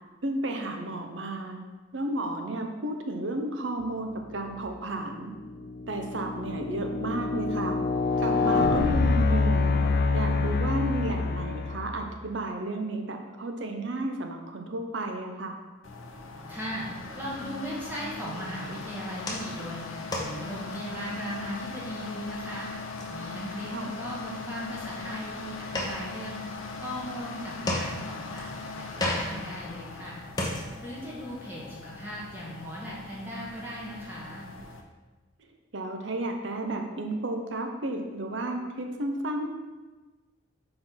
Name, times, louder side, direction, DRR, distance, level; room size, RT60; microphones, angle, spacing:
voice 1, 0.2-1.6 1.9-5.3 5.9-7.8 8.2-9.8 10.1-15.6 23.7-23.9 35.7-39.5, right 2 dB, 60° right, 4 dB, 0.7 m, -32 dB
sound 1, 4.3-4.7 5.2-12.1, left 3 dB, 50° left, 0.3 m, -26 dB
sound 2, 15.8-34.8, left 3 dB, 80° left, 0.7 m, -40 dB
voice 2, 16.5-16.9 17.1-22.7 23.1-26.4 26.8-30.2 30.8-34.5, equal, 10° right, -6 dB, 1.4 m, -38 dB
sound 3, 19.0-31.1, left 1 dB, 20° left, 0.7 m, -37 dB
4.5 x 4.3 x 5.5 m, 1.2 s
head